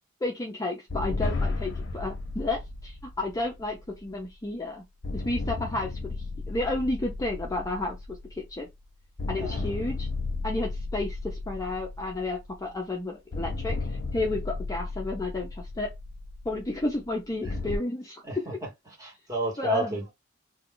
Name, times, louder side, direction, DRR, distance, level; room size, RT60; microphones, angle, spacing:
voice 1, 0.2-4.8 5.1-6.1 6.5-8.7 9.3-10.1 10.4-15.9 16.4-18.2 19.6-20.0, left 2 dB, 15° left, 0.5 m, -32 dB
sound 1, 0.9-4.5 5.0-8.8 9.2-12.8 13.3-17.8, left 3 dB, 55° left, 0.6 m, -34 dB
voice 2, 9.4-9.7 18.2-18.5 19.0-20.1, right 2 dB, 15° right, 1.2 m, -31 dB
2.3 x 2.3 x 3.7 m
head